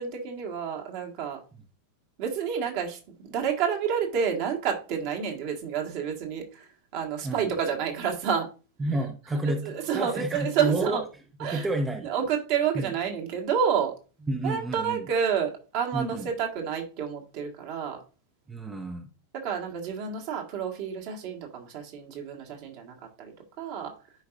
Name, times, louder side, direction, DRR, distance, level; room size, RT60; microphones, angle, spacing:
voice 1, 0.0-1.4 2.2-6.6 6.9-8.5 9.4-11.0 11.4-11.7 12.0-13.9 14.4-18.0 19.4-23.9, right 7 dB, 45° right, 1.7 m, -29 dB
voice 2, 7.2-7.5 8.8-11.0 11.4-12.1 12.7-12.9 14.3-15.1 15.9-16.3 18.5-19.1, right 2 dB, 15° right, 0.7 m, -30 dB
10.0 x 4.8 x 2.6 m
figure-of-eight pair, 90°, 0 cm